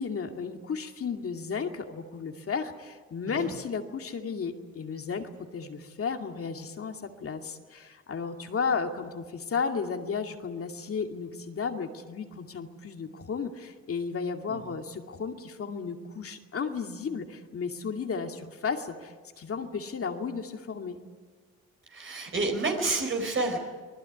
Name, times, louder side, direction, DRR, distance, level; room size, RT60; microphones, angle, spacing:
voice 1, 0.0-21.0, left 5 dB, 50° left, 4 dB, 2.4 m, -34 dB
voice 2, 21.9-23.6, right 3 dB, 40° right, 3 dB, 4.5 m, -29 dB
25.0 x 19.5 x 9.4 m, 1.4 s
cardioid pair, 90°, 30 cm